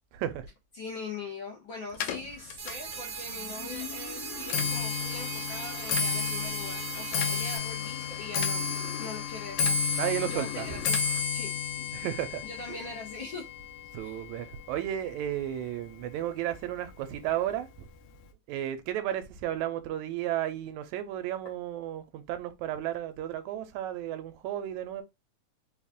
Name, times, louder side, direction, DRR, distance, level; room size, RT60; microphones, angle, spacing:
voice 1, 0.1-0.5 9.9-10.8 11.9-12.8 13.9-17.9 18.5-25.0, right 12 dB, 85° right, 1.9 m, -33 dB
voice 2, 0.7-10.0 10.3-11.0 11.3-12.0 12.4-13.5 14.0-14.2, left 3 dB, 65° left, 1.3 m, -42 dB
Clock, 1.9-15.3 15.6-16.1 16.9-17.0 17.3-17.7 17.9-18.0, left 5 dB, 80° left, 1.9 m, -32 dB
sound 1, 2.6-7.6, right 6 dB, 65° right, 1.2 m, -39 dB
4.8 x 2.4 x 3.5 m
omnidirectional pair, 3.4 m